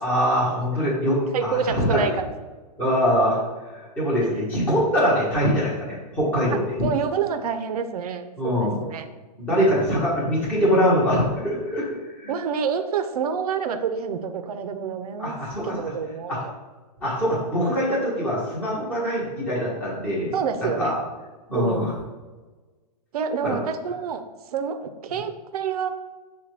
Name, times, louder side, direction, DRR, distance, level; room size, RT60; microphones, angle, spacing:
voice 1, 0.0-2.0 2.8-3.4 4.0-6.6 8.4-8.8 9.4-11.8 12.2-12.3 15.2-15.8 16.3-16.4 17.0-20.3 20.6-20.9 21.5-21.9 23.4-23.6, equal, 5° left, -8 dB, 1.0 m, -23 dB
voice 2, 1.3-2.3 6.8-9.0 12.3-15.3 15.6-16.5 20.3-20.9 21.5-21.9 23.1-24.2 24.5-25.9, right 6 dB, 65° right, 9 dB, 0.5 m, -27 dB
5.7 x 2.2 x 3.1 m, 1.3 s
hypercardioid pair, 155°, 21 cm